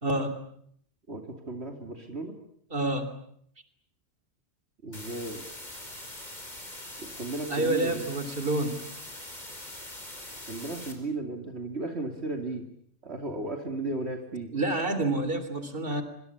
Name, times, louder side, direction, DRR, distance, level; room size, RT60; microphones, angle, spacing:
voice 1, 0.0-0.4 2.7-3.1 7.5-8.8 14.5-16.0, right 2 dB, 50° right, 10 dB, 3.6 m, -28 dB
voice 2, 1.1-2.4 4.8-5.4 7.0-8.1 10.5-12.7 13.0-14.5, right 2 dB, 70° right, 4 dB, 3.2 m, -35 dB
sound 1, 4.9-10.9, left 1 dB, 40° left, 5.1 m, -42 dB
26.0 x 25.0 x 8.5 m, 0.68 s
omnidirectional pair, 1.2 m